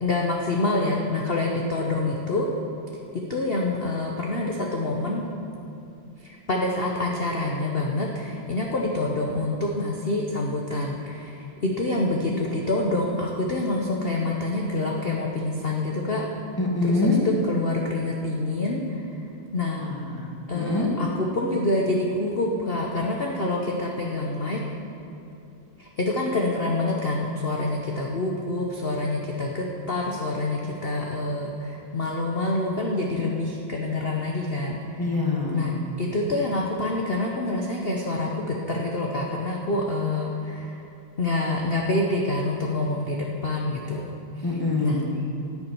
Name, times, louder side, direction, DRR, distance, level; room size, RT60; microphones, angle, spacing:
voice 1, 0.0-2.5 3.1-5.2 6.2-16.2 16.8-19.2 19.5-19.8 20.5-24.6 25.8-35.2 35.5-35.7 36.0-40.8 41.2-44.0 44.4-44.5 44.8-45.0, left 2 dB, 45° left, 0 dB, 0.7 m, -27 dB
voice 2, 16.6-17.2 19.8-20.3 20.5-20.9 35.0-35.7 44.4-45.1, left 3 dB, 10° left, -2 dB, 1.3 m, -25 dB
12.5 x 7.3 x 9.4 m, 2.7 s
omnidirectional pair, 2.4 m